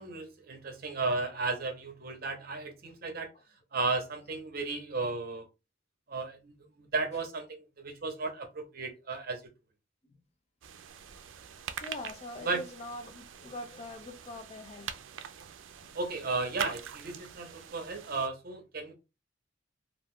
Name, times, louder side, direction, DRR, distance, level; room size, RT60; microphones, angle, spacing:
voice 1, 0.0-3.3 3.7-5.5 6.1-9.4 12.5-12.6 15.9-18.9, right 3 dB, 50° right, 0.7 m, -34 dB
sound 1, 10.6-18.3, right 8 dB, 90° right, 0.4 m, -44 dB
voice 2, 11.8-15.0 15.8-15.9, left 2 dB, 35° left, 0.5 m, -43 dB
2.4 x 2.3 x 3.5 m
head